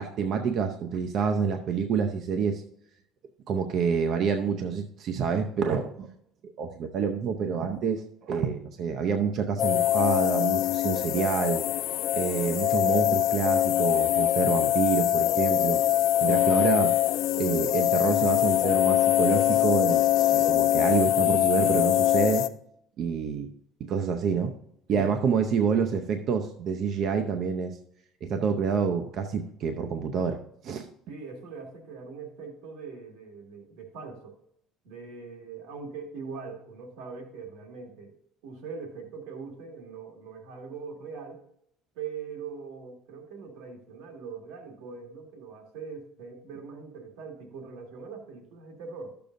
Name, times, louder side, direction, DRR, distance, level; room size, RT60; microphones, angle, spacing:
voice 1, 0.0-2.6 3.5-6.1 6.6-11.6 12.1-15.8 16.2-16.9 17.4-20.0 20.3-22.5 23.0-23.5 23.8-24.5 24.9-27.8 28.2-30.4 30.6-30.9, right 6 dB, 45° right, 6 dB, 0.6 m, -27 dB
sound 1, 9.6-22.5, left 14 dB, 60° left, 0.4 m, -23 dB
voice 2, 24.9-25.3 31.1-34.4 34.8-38.1 38.4-41.4 42.0-49.1, right 5 dB, 85° right, 2 dB, 1.9 m, -41 dB
12.0 x 6.8 x 2.6 m, 0.73 s
cardioid pair, 150°, 0 cm